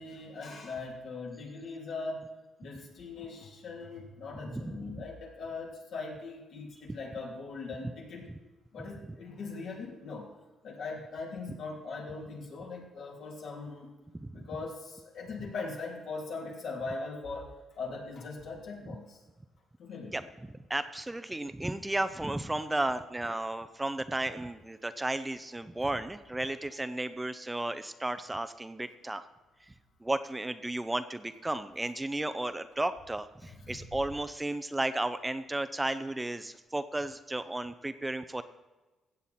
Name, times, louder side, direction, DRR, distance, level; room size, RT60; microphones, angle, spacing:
voice 1, 0.0-2.2 2.6-8.3 8.7-10.3 10.6-13.9 14.3-17.5 17.8-19.2 19.8-20.1 33.6-33.7, left 3 dB, 70° left, -1 dB, 3.1 m, -40 dB
voice 2, 4.5-5.0 11.5-11.6 14.1-14.5 18.9-19.0 20.1-29.3 30.0-38.4, right 2 dB, 15° right, 11 dB, 0.5 m, -34 dB
15.5 x 7.8 x 4.3 m, 1.1 s
cardioid pair, 90°, 0 cm